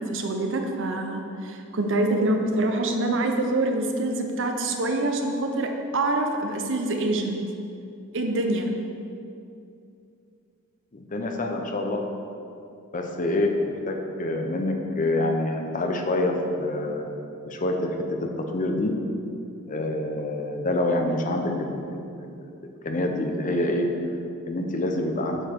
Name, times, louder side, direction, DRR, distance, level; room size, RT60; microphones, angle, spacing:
voice 1, 0.1-7.4 8.1-8.7, right 2 dB, 60° right, 3 dB, 0.9 m, -25 dB
voice 2, 10.9-12.0 12.9-13.5 13.9-17.1 17.5-17.9 18.2-18.9 19.7-22.3 22.8-23.9 24.4-25.4, left 1 dB, 35° left, 3 dB, 0.8 m, -26 dB
8.8 x 7.2 x 4.6 m, 2.6 s
head